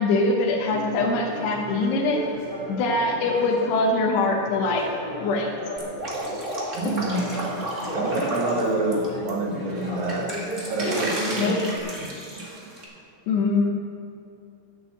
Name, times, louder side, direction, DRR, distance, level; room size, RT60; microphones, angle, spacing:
voice 1, 0.0-2.2 2.7-4.9 5.2-5.5 10.8-11.1 11.4-11.6 13.3-13.7, left 3 dB, 80° left, -1 dB, 3.2 m, -23 dB
Conversation, 0.7-6.4 6.9-11.8, equal, 10° left, 2.3 m, -35 dB
Drip, 5.8-9.3 9.7-12.8, right 1 dB, 30° right, 1.3 m, -33 dB
voice 2, 6.7-7.2 7.9-10.3 10.7-11.6, right 2 dB, 75° right, -2 dB, 4.2 m, -27 dB
12.0 x 8.1 x 7.6 m, 2.7 s
omnidirectional pair, 4.9 m